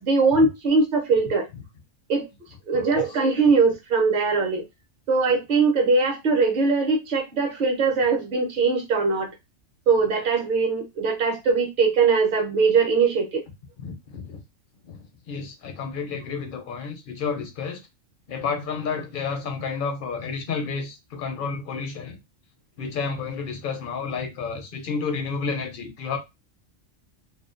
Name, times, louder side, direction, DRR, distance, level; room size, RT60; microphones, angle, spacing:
voice 1, 0.0-1.5 2.1-2.3 2.7-4.7 5.1-9.3 9.9-13.4, right 4 dB, 50° right, 0.7 m, -21 dB
voice 2, 2.7-3.2 13.8-14.4 14.8-15.0 15.3-17.8 18.3-22.2 22.8-26.2, left 5 dB, 60° left, 0.6 m, -31 dB
2.4 x 2.3 x 2.4 m
omnidirectional pair, 1.3 m